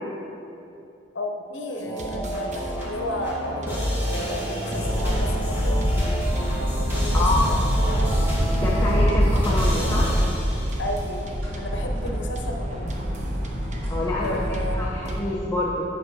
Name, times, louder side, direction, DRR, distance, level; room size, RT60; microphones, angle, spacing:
voice 1, 1.1-5.9 6.9-8.3 10.8-13.1 14.1-14.8, left 1 dB, 75° left, 3 dB, 1.0 m, -33 dB
sound 1, 1.8-11.1, equal, 10° right, 2.1 m, -29 dB
sound 2, 1.8-15.2, right 1 dB, 40° right, 0.8 m, -36 dB
sound 3, 4.9-15.1, equal, 85° right, 2.2 m, -25 dB
voice 2, 8.6-10.2 13.9-14.4 14.7-15.8, left 2 dB, 20° left, -5 dB, 0.8 m, -26 dB
9.0 x 6.3 x 4.8 m, 2.9 s
head